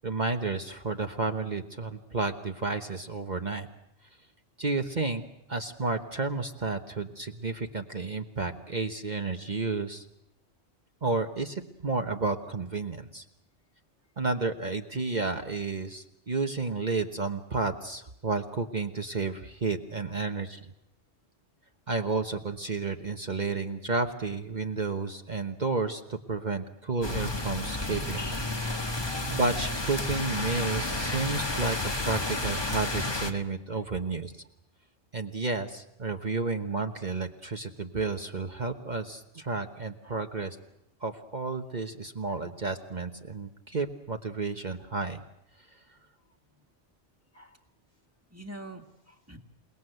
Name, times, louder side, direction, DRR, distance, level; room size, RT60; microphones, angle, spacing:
voice 1, 0.0-3.7 4.6-10.0 11.0-13.2 14.2-20.7 21.9-28.3 29.3-34.4 35.1-40.6 41.0-45.2 45.6-46.0, right 3 dB, 45° right, 5 dB, 1.2 m, -31 dB
sound 1, 27.0-33.3, left 2 dB, 25° left, 1.5 m, -31 dB
voice 2, 28.1-29.0 30.7-31.1 33.7-33.8 40.0-40.2 42.3-42.4 47.3-47.6 48.3-49.4, right 1 dB, 15° right, 5 dB, 1.9 m, -48 dB
28.5 x 19.5 x 7.9 m, 0.80 s
omnidirectional pair, 1.1 m